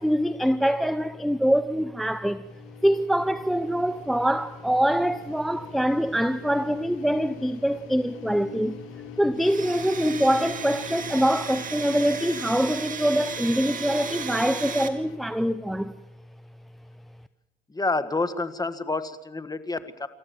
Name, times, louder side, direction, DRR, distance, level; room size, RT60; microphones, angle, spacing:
voice 1, 0.0-2.4 2.8-8.8 9.2-15.9, equal, ahead, 0.7 m, -24 dB
sound 1, 2.4-15.2, left 10 dB, 90° left, 1.9 m, -45 dB
Domestic sounds home sounds, 9.4-14.9, right 5 dB, 45° right, 2.6 m, -35 dB
voice 2, 17.7-20.1, left 3 dB, 20° left, 1.7 m, -28 dB
27.5 x 14.0 x 7.8 m
cardioid pair, 90°, 20 cm